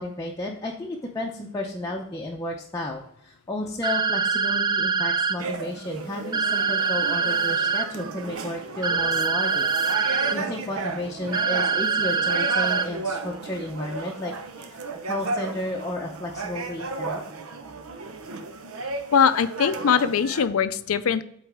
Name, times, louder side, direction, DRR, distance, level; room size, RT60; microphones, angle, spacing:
voice 1, 0.0-9.7 10.3-14.3 14.6-17.2, left 1 dB, 15° left, -1 dB, 0.7 m, -32 dB
sound 1, 3.8-5.4 6.3-7.9 8.8-10.4 11.3-12.9, right 5 dB, 20° right, 0.3 m, -24 dB
sound 2, 5.4-20.5, right 3 dB, 80° right, 0.7 m, -34 dB
voice 2, 19.1-21.2, left 7 dB, 75° left, 13 dB, 0.5 m, -21 dB
8.6 x 4.1 x 3.5 m, 0.70 s
head